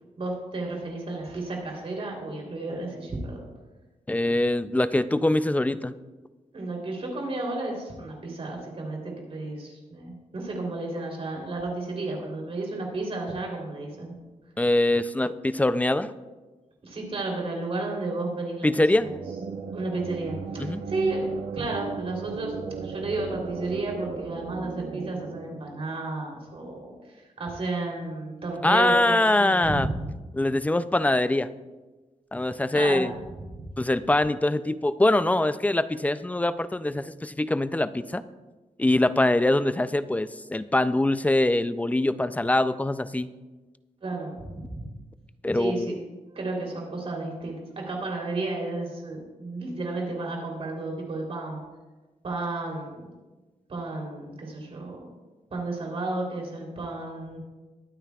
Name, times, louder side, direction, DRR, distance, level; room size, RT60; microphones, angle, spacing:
voice 1, 0.2-3.4 6.5-14.1 16.8-19.1 19.7-21.3 21.5-30.1 32.7-33.7 44.0-45.0 45.5-45.9 46.3-51.6 52.2-53.1 53.7-55.1 55.5-57.4, right 2 dB, 50° right, 0 dB, 3.3 m, -32 dB
voice 2, 4.1-5.9 14.6-16.1 18.6-19.1 20.6-20.8 28.6-29.9 30.3-31.5 32.3-33.1 33.8-38.2 38.8-43.3 45.4-46.0, left 1 dB, 10° left, 13 dB, 0.4 m, -23 dB
sound 1, 18.8-26.4, right 5 dB, 70° right, 0.9 m, -36 dB
21.5 x 9.2 x 2.4 m, 1.2 s
wide cardioid pair, 135°, 13 cm